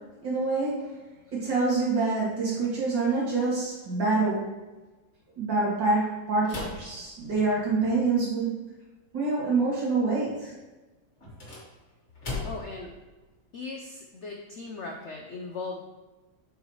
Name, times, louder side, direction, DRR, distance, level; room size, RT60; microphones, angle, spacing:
voice 1, 0.2-0.8 1.3-4.5 5.4-8.5 9.1-10.5, right 3 dB, 65° right, -6 dB, 3.0 m, -26 dB
sound 1, 6.4-7.8 11.2-12.8, left 3 dB, 40° left, 1.8 m, -38 dB
voice 2, 12.4-12.9 13.5-15.8, left 3 dB, 85° left, 1 dB, 0.6 m, -38 dB
7.5 x 5.3 x 3.1 m, 1.2 s
omnidirectional pair, 2.1 m